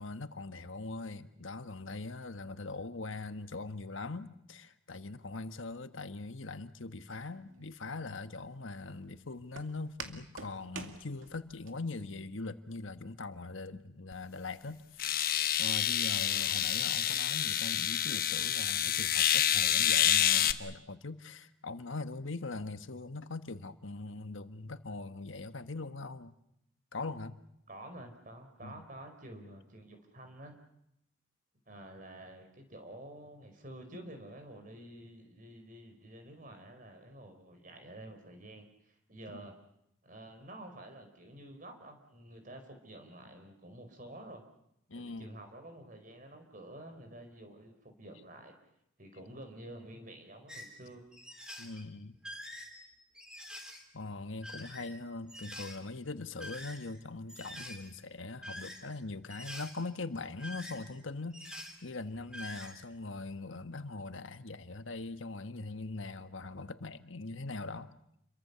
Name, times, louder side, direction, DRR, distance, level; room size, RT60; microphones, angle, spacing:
voice 1, 0.0-15.1 15.6-26.3 26.9-27.4 28.6-28.7 39.3-39.5 44.9-45.3 51.6-52.2 53.9-67.9, left 3 dB, 80° left, 11 dB, 1.3 m, -41 dB
Walk footsteps, 7.1-11.7, right 5 dB, 85° right, 2.2 m, -48 dB
sound 1, 14.1-14.2 15.0-20.5, left 10 dB, 45° left, 1.1 m, -28 dB
voice 2, 16.2-16.6 27.7-30.6 31.7-39.5 40.0-44.4 44.9-48.5 49.0-51.0, right 1 dB, 40° right, 6 dB, 4.7 m, -50 dB
sound 2, 50.5-50.7 51.1-51.8 52.2-53.8 54.3-54.9 55.3-55.8 56.3-57.0 57.3-57.9 58.4-58.9 59.3-59.8 60.2-61.0 61.3-61.8 62.1-62.7, equal, 5° right, 3.3 m, -46 dB
29.0 x 23.0 x 6.9 m, 0.78 s
head